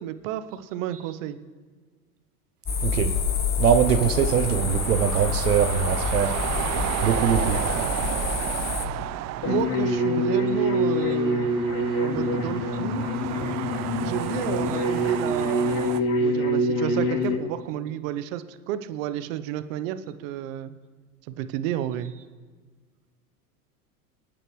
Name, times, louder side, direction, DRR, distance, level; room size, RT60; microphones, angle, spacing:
voice 1, 0.0-1.4 9.4-11.5 12.0-13.0 14.0-20.7 21.3-22.1, right 11 dB, 60° right, 12 dB, 0.9 m, -31 dB
sound 1, 2.7-8.9, left 5 dB, 20° left, 1.0 m, -27 dB
voice 2, 2.8-3.1 3.6-6.3 7.0-7.6, right 8 dB, 90° right, 9 dB, 0.9 m, -22 dB
sound 2, 3.6-16.0, right 14 dB, 35° right, 0.5 m, -33 dB
sound 3, 9.4-17.3, equal, 45° left, 3.4 m, -25 dB
26.0 x 9.1 x 3.2 m, 1.5 s
hypercardioid pair, 90°, 45 cm